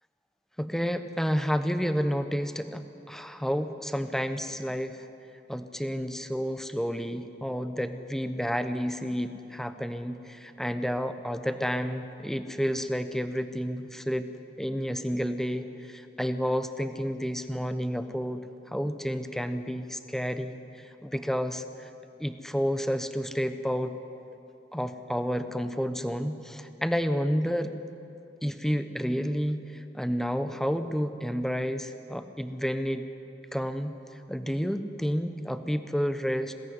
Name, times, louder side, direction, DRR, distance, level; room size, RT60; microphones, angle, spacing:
voice 1, 0.6-5.1 5.5-14.3 14.6-18.4 18.7-20.5 21.0-21.9 22.2-23.9 24.7-27.8 28.4-33.1 33.5-34.0 34.3-36.5, equal, ahead, 9 dB, 0.9 m, -30 dB
21.0 x 16.5 x 9.7 m, 2.8 s
head